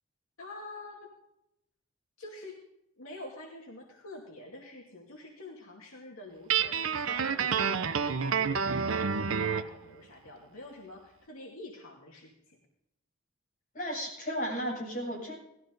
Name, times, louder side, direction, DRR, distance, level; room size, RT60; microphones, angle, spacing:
voice 1, 0.4-1.2 2.2-2.6 3.0-12.6, left 2 dB, 85° left, -1 dB, 2.4 m, -47 dB
Guitar, 6.5-9.7, right 6 dB, 70° right, 0.7 m, -29 dB
voice 2, 13.7-15.4, equal, 40° left, -3 dB, 7.2 m, -34 dB
18.0 x 14.0 x 3.9 m, 0.82 s
head